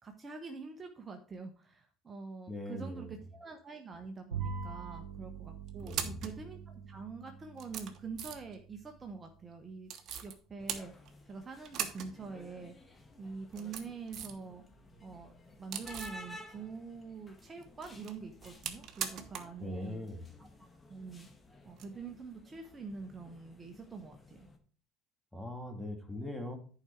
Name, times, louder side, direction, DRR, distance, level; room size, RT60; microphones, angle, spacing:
voice 1, 0.0-9.9 10.2-10.9 11.3-14.6 15.0-15.3 15.6-20.1 20.4-20.5 20.9-21.3 21.6-24.5, right 4 dB, 30° right, 4 dB, 1.1 m, -45 dB
voice 2, 2.5-3.1 5.8-6.2 19.6-20.2 25.3-26.6, left 1 dB, ahead, 3 dB, 2.2 m, -41 dB
Bowed string instrument, 4.3-9.9, right 6 dB, 85° right, 1.0 m, -45 dB
sound 1, 4.4-5.0 5.7-6.4 7.1-7.2 7.5-8.6 9.9-10.3 10.7-11.3 11.6-12.1 12.4-12.5 13.3-14.4 14.8-16.2 17.6-19.6 19.8-19.9 21.7-21.8, right 8 dB, 50° right, 1.2 m, -41 dB
sound 2, 10.6-24.6, left 1 dB, 20° left, 1.5 m, -55 dB
10.5 x 5.1 x 4.5 m, 0.42 s
hypercardioid pair, 65°, 0 cm